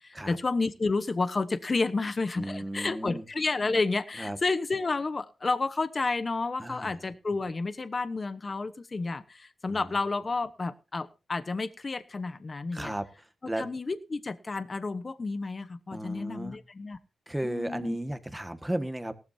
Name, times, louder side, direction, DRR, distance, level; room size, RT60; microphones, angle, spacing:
voice 1, 0.0-12.9 13.6-17.0 17.4-18.0, left 3 dB, 30° left, 12 dB, 1.0 m, -31 dB
voice 2, 2.4-3.3 4.2-4.4 6.6-7.0 9.7-9.8 12.7-13.6 15.9-16.6 17.3-19.1, right 1 dB, 10° right, 8 dB, 1.7 m, -34 dB
18.5 x 13.0 x 2.8 m, 0.30 s
wide cardioid pair, 120°, 0 cm